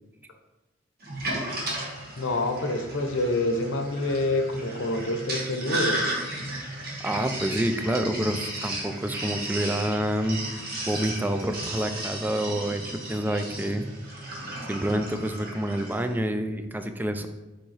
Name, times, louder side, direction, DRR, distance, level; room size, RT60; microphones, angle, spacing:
Sink (filling or washing), 1.0-16.0, right 1 dB, 50° right, 1.4 m, -34 dB
voice 1, 2.2-6.2, left 2 dB, 75° left, 6 dB, 0.7 m, -27 dB
voice 2, 7.0-13.8 14.6-17.3, right 1 dB, 10° right, 7 dB, 0.3 m, -28 dB
6.3 x 4.6 x 3.2 m, 1.1 s
head